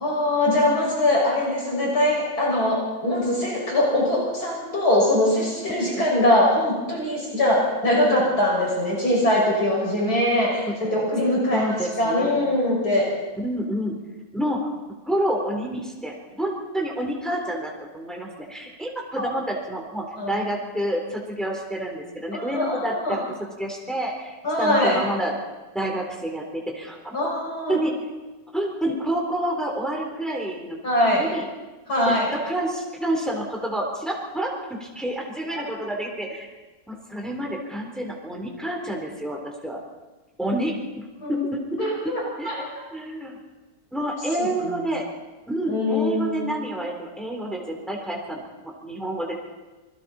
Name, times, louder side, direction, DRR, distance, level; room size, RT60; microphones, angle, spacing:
voice 1, 0.0-13.0 20.2-20.4 22.3-23.2 24.4-25.0 27.1-27.8 30.8-31.2 31.9-32.3 41.2-41.5 41.8-42.5 44.4-44.5 45.7-46.4, left 1 dB, 75° left, -3 dB, 6.9 m, -22 dB
voice 2, 11.5-12.4 13.4-13.9 14.3-14.7 15.0-23.2 23.6-25.3 25.7-27.2 27.7-28.0 28.5-30.8 31.1-31.5 32.1-36.5 36.9-39.8 40.4-43.4 43.9-45.1 45.5-48.4 48.8-49.3, right 1 dB, ahead, 0 dB, 3.7 m, -29 dB
27.5 x 21.5 x 4.4 m, 1.2 s
omnidirectional pair, 1.7 m